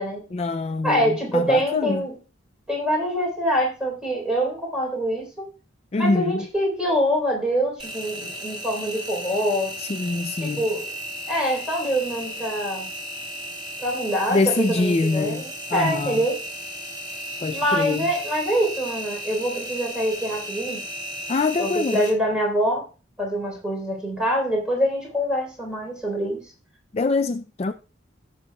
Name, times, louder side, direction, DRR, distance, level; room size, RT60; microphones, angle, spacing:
voice 1, 0.3-2.0 5.9-6.4 9.8-10.6 14.3-16.2 17.4-18.1 21.3-22.0 26.9-27.7, left 3 dB, 35° left, 0.4 m, -24 dB
voice 2, 0.8-2.1 2.7-5.4 6.0-9.7 10.4-10.9 11.3-12.9 13.8-16.4 17.5-20.8 21.6-22.9 23.2-26.4, equal, 5° right, 3.8 m, -25 dB
Engine, 7.8-22.1, equal, 25° right, 3.3 m, -35 dB
17.5 x 6.9 x 2.3 m
head